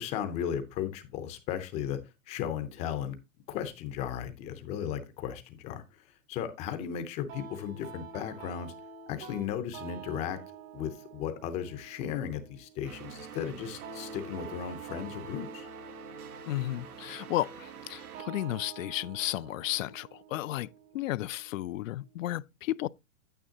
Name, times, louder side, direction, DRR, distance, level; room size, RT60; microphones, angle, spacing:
voice 1, 0.0-2.0 2.3-3.2 3.5-8.7 9.1-10.4 10.7-15.7, left 9 dB, 15° left, 0.5 m, -36 dB
sound 1, 7.3-22.2, right 4 dB, 65° right, 2.8 m, -49 dB
sound 2, 12.8-18.2, right 8 dB, 90° right, 1.3 m, -46 dB
voice 2, 16.5-22.9, left 15 dB, 65° left, 0.5 m, -33 dB
9.0 x 8.7 x 2.7 m
hypercardioid pair, 150°, 43 cm